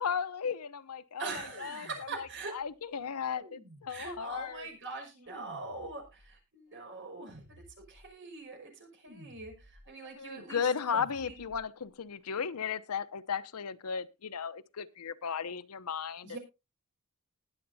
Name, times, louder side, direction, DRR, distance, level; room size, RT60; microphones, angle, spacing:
voice 1, 0.0-4.7 10.2-16.4, left 6 dB, 90° left, 0.7 m, -35 dB
voice 2, 1.2-2.6 3.9-7.6 7.9-11.4 16.2-16.4, right 3 dB, 55° right, 5.7 m, -43 dB
sound 1, 1.4-2.6 3.3-4.5 5.3-6.4 7.2-8.2 9.1-10.0 10.9-11.8, equal, 70° right, 6.0 m, -55 dB
20.5 x 7.9 x 2.7 m
head